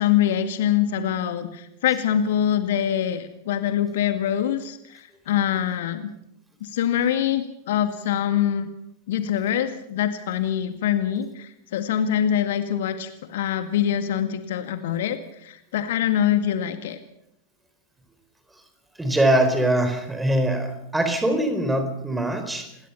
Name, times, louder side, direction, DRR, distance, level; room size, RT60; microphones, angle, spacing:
voice 1, 0.0-6.1 6.6-8.7 9.1-17.0, left 10 dB, 55° left, 9 dB, 2.0 m, -24 dB
voice 2, 19.0-22.8, right 1 dB, 5° right, 8 dB, 4.4 m, -22 dB
27.0 x 21.0 x 5.8 m, 0.80 s
figure-of-eight pair, 90°, 0 cm